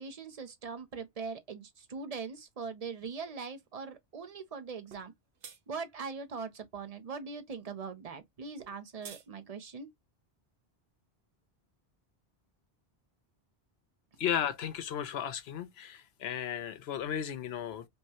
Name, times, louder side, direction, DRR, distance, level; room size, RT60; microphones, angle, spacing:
voice 1, 0.0-5.1 5.7-9.9, right 5 dB, 40° right, 0.8 m, -41 dB
sound 1, 4.9-5.1 5.4-5.6 8.6-9.3, right 7 dB, 80° right, 1.0 m, -48 dB
voice 2, 14.2-17.9, left 9 dB, 80° left, 0.9 m, -34 dB
5.4 x 2.2 x 2.8 m
omnidirectional pair, 1.0 m